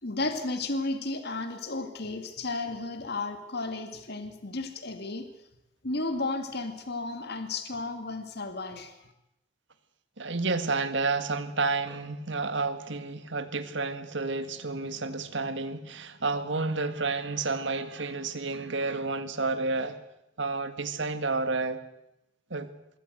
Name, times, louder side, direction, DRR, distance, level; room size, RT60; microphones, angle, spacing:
voice 1, 0.0-5.3 5.8-9.1, left 2 dB, 55° left, 7 dB, 2.0 m, -33 dB
voice 2, 10.2-20.0 20.4-21.8 22.5-22.7, right 3 dB, 65° right, 10 dB, 1.8 m, -30 dB
23.0 x 17.0 x 8.0 m, 0.86 s
head